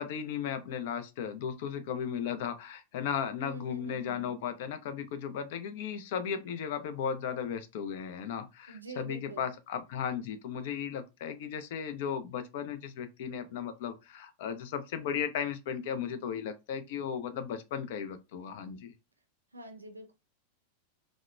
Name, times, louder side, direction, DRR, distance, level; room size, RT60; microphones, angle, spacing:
voice 1, 0.0-18.9, left 8 dB, 50° left, 0.4 m, -36 dB
voice 2, 3.4-4.4 8.7-9.5 19.5-20.1, right 2 dB, 80° right, 0.5 m, -45 dB
2.8 x 2.0 x 2.3 m
figure-of-eight pair, 90°, 0 cm